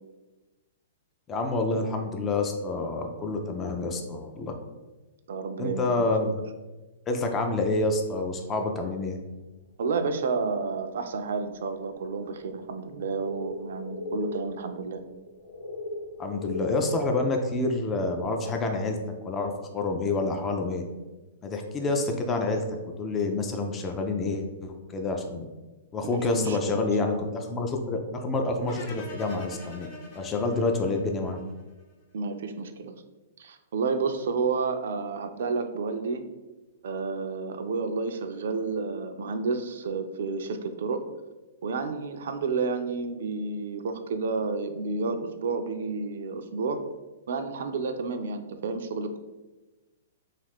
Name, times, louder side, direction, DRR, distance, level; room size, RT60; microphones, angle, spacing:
voice 1, 1.3-4.5 5.6-6.4 7.1-9.2 16.2-19.0 19.2-20.8 21.4-22.7 23.0-25.5 25.9-29.9 30.2-31.4, left 3 dB, 20° left, 3 dB, 0.3 m, -28 dB
voice 2, 5.3-5.9 6.2-6.3 9.8-15.0 26.2-26.9 32.1-32.9 33.4-36.2 36.8-41.0 41.6-46.8 47.3-49.2, right 4 dB, 70° right, 8 dB, 0.3 m, -30 dB
sound 1, 9.6-9.7 11.3-11.4 12.5-18.2, left 1 dB, 90° left, 0.6 m, -39 dB
sound 2, 28.7-31.8, left 3 dB, 45° left, 0.8 m, -43 dB
2.5 x 2.4 x 3.4 m, 1.2 s
hypercardioid pair, 140°, 0 cm